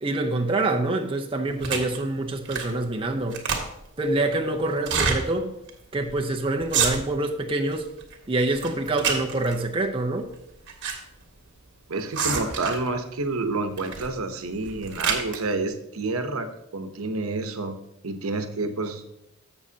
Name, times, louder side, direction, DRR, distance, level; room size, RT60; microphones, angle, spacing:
voice 1, 0.0-3.4 4.0-5.5 5.9-7.9 8.3-10.3, right 2 dB, 25° right, 0.7 m, -26 dB
sound 1, 1.6-2.0 2.4-2.8 3.1-3.9 4.8-5.2 5.7-5.8 6.0-6.2 6.6-7.3 7.7-8.2 8.5-9.6 10.4-11.0 11.2-11.3 12.1-12.9 13.8-14.1 14.5-15.4, right 5 dB, 60° right, 1.6 m, -27 dB
voice 2, 11.9-16.5 16.7-17.7 18.0-19.0, right 3 dB, 85° right, 0.9 m, -29 dB
12.5 x 7.4 x 2.8 m
head